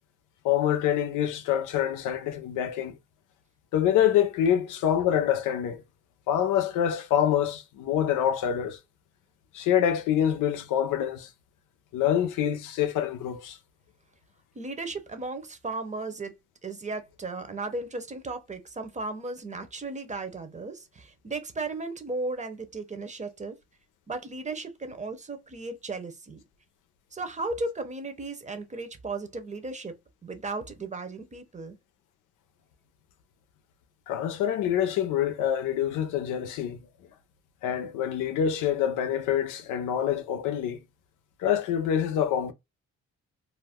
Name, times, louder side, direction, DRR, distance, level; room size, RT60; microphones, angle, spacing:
voice 1, 0.4-3.0 3.7-5.8 6.3-8.8 9.5-11.3 11.9-13.6 34.1-36.8 37.6-40.8 41.4-42.5, left 10 dB, 90° left, 0.6 m, -26 dB
voice 2, 14.5-16.3 16.6-23.6 24.1-26.4 27.1-30.0 30.2-31.8, right 3 dB, 25° right, 0.7 m, -35 dB
2.6 x 2.1 x 3.4 m
cardioid pair, 90°, 30 cm